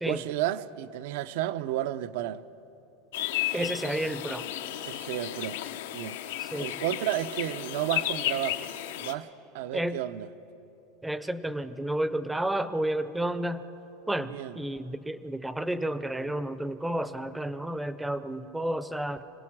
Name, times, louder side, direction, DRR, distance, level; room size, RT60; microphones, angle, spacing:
voice 1, 0.1-2.4 4.9-5.6 5.9-6.2 6.6-8.7 9.0-9.3 9.5-10.3 14.3-14.6, right 13 dB, 65° right, 0.6 m, -32 dB
sound 1, 3.1-9.1, left 13 dB, 85° left, 0.9 m, -33 dB
voice 2, 3.5-4.4 6.4-6.7 9.7-10.0 11.0-13.7 14.1-19.2, right 1 dB, 5° right, 0.6 m, -31 dB
25.5 x 17.5 x 6.1 m
supercardioid pair, 165°, 0 cm